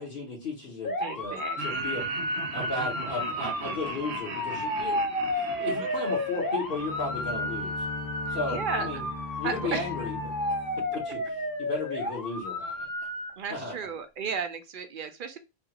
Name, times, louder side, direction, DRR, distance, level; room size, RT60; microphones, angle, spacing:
voice 1, 0.0-2.1 2.5-5.0 5.3-7.8 8.3-9.1 9.4-10.3 10.9-12.8 13.5-13.9, left 3 dB, 55° left, -4 dB, 1.2 m, -35 dB
sound 1, 0.8-13.3, left 1 dB, 25° left, 0.5 m, -32 dB
voice 2, 1.0-2.0 5.7-6.3 8.3-8.9 9.4-9.9 13.4-15.4, right 6 dB, 60° right, 8 dB, 0.6 m, -35 dB
Laughter, 1.6-7.8, right 6 dB, 90° right, 0.9 m, -40 dB
sound 2, 6.7-11.6, left 4 dB, 80° left, 1.4 m, -40 dB
3.3 x 2.4 x 2.8 m, 0.27 s
omnidirectional pair, 1.1 m